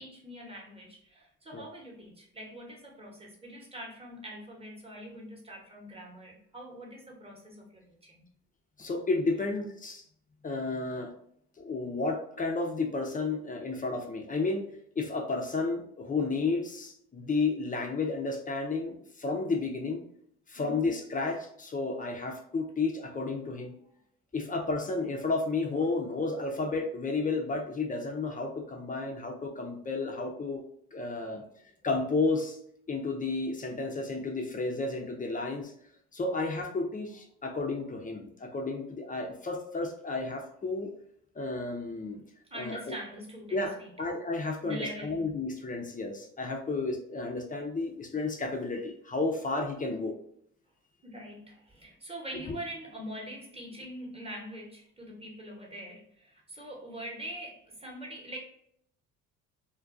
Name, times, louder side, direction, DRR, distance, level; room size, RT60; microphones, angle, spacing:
voice 1, 0.0-8.3 20.5-20.9 31.1-31.7 42.5-43.9 44.6-45.2 51.0-58.4, equal, 15° right, -1 dB, 0.9 m, -43 dB
voice 2, 8.8-10.0 10.4-11.1 11.6-14.6 15.0-20.0 20.5-23.7 24.3-30.6 30.9-31.4 31.8-32.6 32.9-35.7 36.1-40.9 41.4-42.2 42.5-42.9 43.5-50.1, left 3 dB, 25° left, 3 dB, 0.5 m, -32 dB
2.3 x 2.2 x 2.4 m, 0.70 s
supercardioid pair, 75°, 36 cm